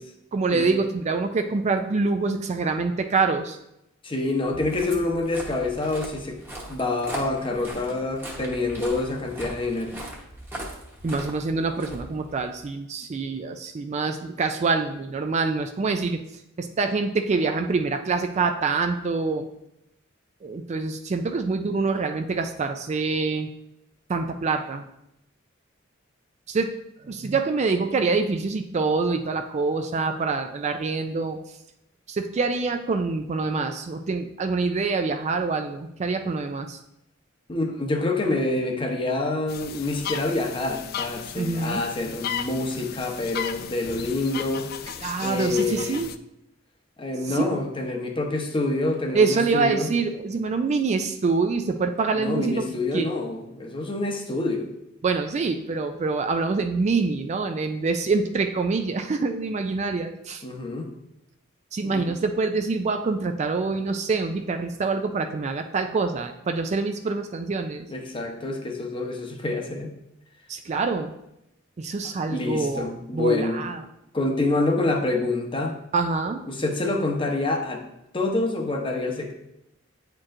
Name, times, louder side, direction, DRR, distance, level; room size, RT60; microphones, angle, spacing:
voice 1, 0.3-3.6 11.0-16.2 16.6-19.5 20.4-23.5 24.1-24.8 26.5-26.7 27.0-31.4 32.1-36.8 41.3-41.8 45.0-46.1 47.3-47.6 49.1-52.6 52.9-53.1 55.0-60.4 61.7-67.9 70.5-71.1 71.8-72.9 73.1-73.8 75.9-76.4, right 4 dB, 35° right, 6 dB, 0.3 m, -25 dB
voice 2, 4.0-6.4 6.7-9.9 37.5-44.7 45.2-46.0 47.0-49.9 52.2-54.7 60.4-60.9 61.8-62.1 67.9-69.9 72.0-73.6 74.1-75.7 76.5-77.8 78.1-79.3, left 2 dB, 25° left, 2 dB, 0.8 m, -27 dB
Walk footsteps, 4.4-12.6, right 1 dB, 10° right, 1.0 m, -39 dB
sound 1, 39.5-46.2, left 8 dB, 50° left, 0.3 m, -35 dB
8.5 x 4.5 x 2.5 m, 0.84 s
head